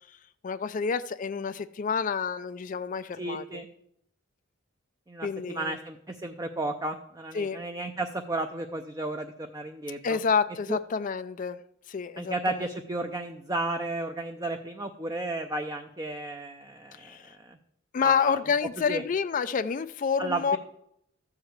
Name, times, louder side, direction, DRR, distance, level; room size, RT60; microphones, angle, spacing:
voice 1, 0.4-3.6 5.2-5.8 7.3-7.6 10.0-11.6 11.9-12.7 17.0-17.3 17.9-20.6, left 6 dB, 40° left, 12 dB, 0.4 m, -28 dB
voice 2, 3.2-3.7 5.1-10.2 10.7-10.8 12.2-17.6 18.0-18.4 18.9-19.0 20.2-20.6, right 2 dB, 20° right, 5 dB, 0.6 m, -33 dB
13.5 x 4.8 x 8.0 m, 0.75 s
head